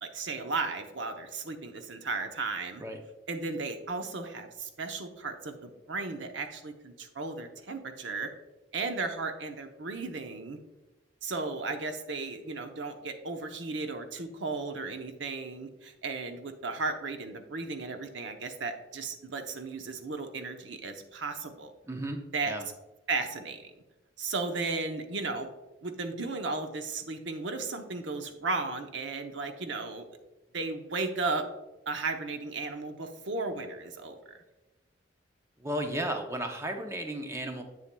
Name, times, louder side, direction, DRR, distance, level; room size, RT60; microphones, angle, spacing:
voice 1, 0.0-2.8 3.3-8.3 8.7-10.6 11.2-21.7 22.3-22.5 23.1-23.7 24.2-25.5 25.8-30.1 30.5-31.4 31.9-34.2, right 3 dB, 80° right, 6 dB, 0.8 m, -35 dB
voice 2, 21.9-22.2 22.5-22.6 35.6-37.6, right 1 dB, 15° right, 4 dB, 0.7 m, -34 dB
8.0 x 7.1 x 2.2 m, 1.1 s
head